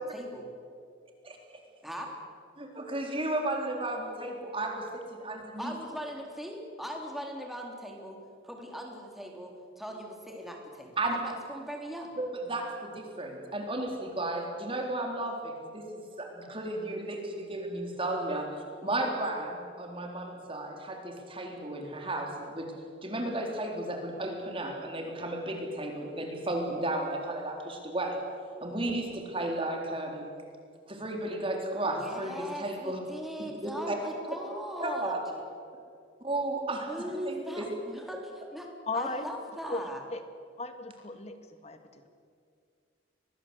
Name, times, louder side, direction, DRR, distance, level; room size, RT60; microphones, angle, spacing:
voice 1, 0.1-0.4 1.8-2.2 5.6-8.2 8.4-12.1 31.8-35.4 36.9-38.7 38.9-40.0, equal, ahead, 1 dB, 3.7 m, -40 dB
voice 2, 2.6-5.7 11.0-11.2 12.2-18.5 18.8-22.7 23.0-28.2 28.6-30.2 30.9-33.0 33.6-34.0 34.8-35.2 36.2-36.9 37.1-37.7, right 1 dB, 30° right, 1 dB, 3.8 m, -34 dB
voice 3, 38.9-39.2 39.7-40.2 40.6-41.4 41.6-42.1, left 3 dB, 35° left, 8 dB, 1.9 m, -36 dB
25.0 x 20.0 x 8.3 m, 2.3 s
head